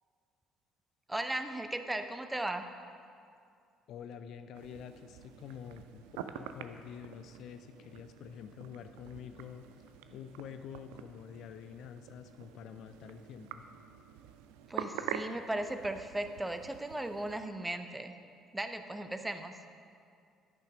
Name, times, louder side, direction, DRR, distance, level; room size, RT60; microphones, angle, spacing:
voice 1, 1.1-2.6 14.7-18.1 18.5-19.6, right 1 dB, 10° right, 8 dB, 0.7 m, -36 dB
voice 2, 3.9-6.0 6.3-9.7 10.1-13.6, left 8 dB, 60° left, 9 dB, 0.4 m, -47 dB
sound 1, 4.5-17.5, right 9 dB, 75° right, 0.4 m, -46 dB
10.5 x 5.9 x 4.9 m, 2.3 s
hypercardioid pair, 55°, 0 cm